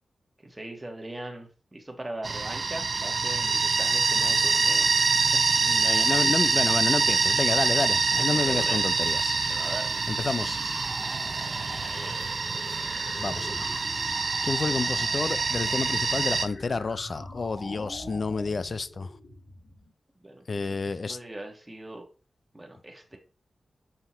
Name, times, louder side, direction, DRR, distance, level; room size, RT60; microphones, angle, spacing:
voice 1, 0.4-4.9 6.0-6.1 8.3-8.8 9.5-10.0 11.9-12.2 17.6-18.4 20.2-22.0 22.5-23.2, right 1 dB, 15° right, 1.3 m, -40 dB
sound 1, 2.2-16.5, right 4 dB, 50° right, 0.5 m, -25 dB
voice 2, 5.6-9.4 10.1-10.6 13.2-13.7 14.0-14.2 14.4-19.1 20.5-21.2, left 4 dB, 45° left, 0.3 m, -30 dB
sound 2, 10.4-19.9, left 1 dB, 85° left, 2.8 m, -44 dB
5.7 x 5.5 x 3.0 m
wide cardioid pair, 105°, 0 cm